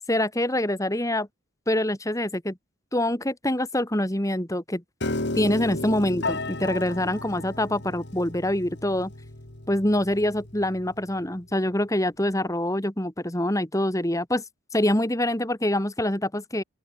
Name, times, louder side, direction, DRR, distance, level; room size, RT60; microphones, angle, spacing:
voice 1, 0.1-1.3 1.7-2.6 2.9-4.8 5.3-9.1 9.7-14.4 14.7-16.6, left 1 dB, 15° left, 2.1 m, -25 dB
Piano, 5.0-11.2, left 2 dB, 55° left, 2.7 m, -34 dB
open air
head